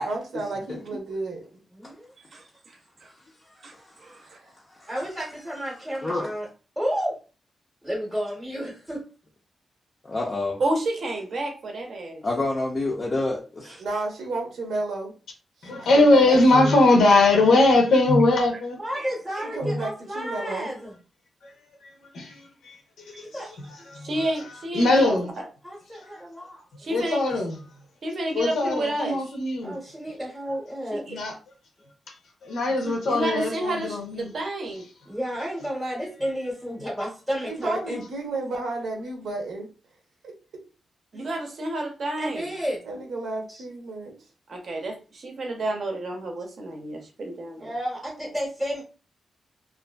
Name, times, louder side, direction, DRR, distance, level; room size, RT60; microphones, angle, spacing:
voice 1, 0.0-1.4 4.2-4.5 13.8-15.1 15.6-16.2 16.5-16.8 19.4-20.7 37.4-39.7 40.2-40.3 42.8-44.1, right 2 dB, 85° right, 0.7 m, -32 dB
voice 2, 1.7-2.1 4.9-6.5 6.8-7.2 7.8-9.0 16.3-16.4 18.8-20.9 23.3-23.5 25.6-26.6 29.6-31.0 35.1-38.0 41.1-41.3 42.2-42.8 43.5-43.6 47.6-48.8, equal, 5° right, 0.7 m, -31 dB
voice 3, 2.3-3.1 3.6-3.7 4.0-4.2 10.6-12.2 19.0-19.1 19.4-19.7 23.1-23.3 24.0-25.4 26.8-27.2 28.0-29.2 30.9-31.2 32.8-34.9 41.1-42.5 44.5-47.7, right 1 dB, 45° right, 0.6 m, -30 dB
voice 4, 3.7-4.2 4.8-4.9 6.0-6.3 10.0-10.6 12.2-13.8, left 2 dB, 25° left, 0.4 m, -28 dB
voice 5, 15.6-18.8 19.6-19.8 21.4-21.5 22.1-22.8 23.1-23.5 23.9-24.1 24.7-25.3 26.9-27.6 28.3-29.8 31.1-31.3 32.4-34.3, left 2 dB, 85° left, 0.7 m, -20 dB
2.5 x 2.5 x 2.2 m
wide cardioid pair, 180°, 0 cm